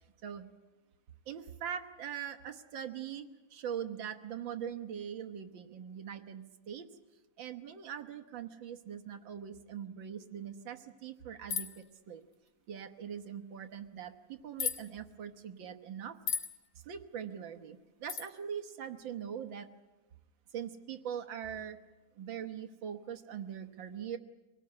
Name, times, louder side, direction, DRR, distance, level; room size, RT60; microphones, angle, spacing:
voice 1, 1.3-6.9 7.4-12.2 12.7-16.2 16.9-19.7 20.5-21.8 22.2-24.2, right 8 dB, 65° right, 8 dB, 1.8 m, -42 dB
sound 1, 11.5-11.8 14.6-14.8 16.3-16.5 18.1-18.3, left 7 dB, 50° left, 2.0 m, -34 dB
25.0 x 18.0 x 9.6 m, 1.2 s
omnidirectional pair, 2.4 m